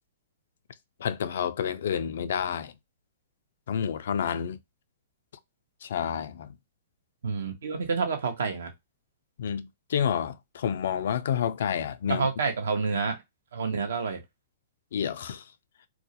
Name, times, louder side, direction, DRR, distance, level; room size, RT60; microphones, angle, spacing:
voice 1, 1.0-2.7 3.7-4.6 5.8-6.6 9.4-12.3 14.9-15.4, left 8 dB, 70° left, 0.3 m, -29 dB
voice 2, 7.2-8.7 12.1-13.2 13.5-14.2, right 5 dB, 75° right, 0.6 m, -28 dB
2.3 x 2.0 x 2.7 m
hypercardioid pair, 125°, 0 cm